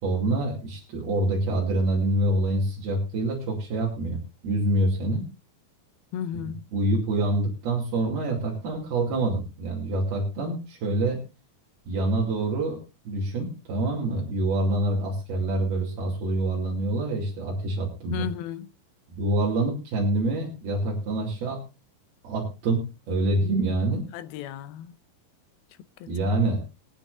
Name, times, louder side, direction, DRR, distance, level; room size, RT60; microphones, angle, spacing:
voice 1, 0.0-5.3 6.7-11.2 11.9-12.8 13.1-18.3 19.2-21.6 22.2-24.1 26.1-26.6, right 2 dB, 85° right, 4.6 m, -26 dB
voice 2, 6.1-6.7 18.1-18.7 24.1-25.0 26.0-26.1, left 9 dB, 85° left, 2.7 m, -34 dB
24.5 x 8.8 x 2.5 m
omnidirectional pair, 4.3 m